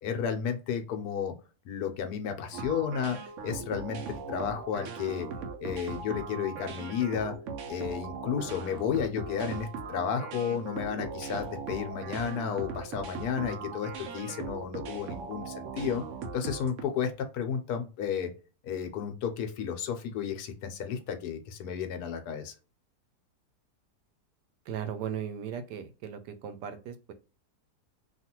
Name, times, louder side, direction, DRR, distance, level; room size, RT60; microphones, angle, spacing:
voice 1, 0.0-1.3 1.6-5.3 5.6-7.3 7.7-16.0 16.3-18.3 18.6-22.5, left 7 dB, 75° left, 6 dB, 1.1 m, -32 dB
sound 1, 2.5-16.8, right 5 dB, 65° right, 0.8 m, -39 dB
voice 2, 24.7-27.1, right 8 dB, 85° right, 9 dB, 1.2 m, -37 dB
2.9 x 2.4 x 2.8 m, 0.33 s
omnidirectional pair, 1.7 m